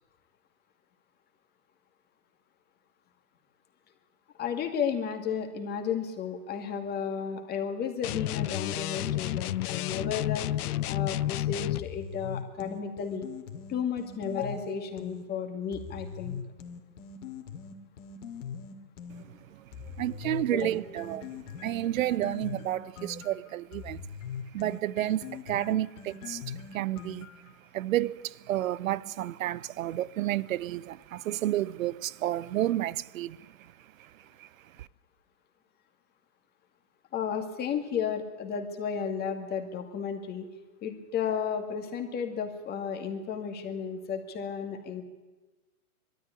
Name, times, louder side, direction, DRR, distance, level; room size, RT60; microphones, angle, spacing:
voice 1, 4.4-10.4 10.9-13.3 13.7-16.3 20.5-20.7 37.1-40.5 40.8-45.0, left 7 dB, 20° left, 2.2 m, -33 dB
sound 1, 8.0-11.9, left 14 dB, 80° left, 0.6 m, -31 dB
sound 2, 11.7-15.3 15.7-19.3 19.7-27.5, left 7 dB, 55° left, 2.5 m, -41 dB
voice 2, 20.0-21.3 21.6-24.0 24.5-26.4 26.7-27.3 27.7-33.4 34.4-34.5 34.8-34.9, right 13 dB, 65° right, 0.7 m, -30 dB
21.5 x 13.5 x 9.8 m
hypercardioid pair, 145°, 45 cm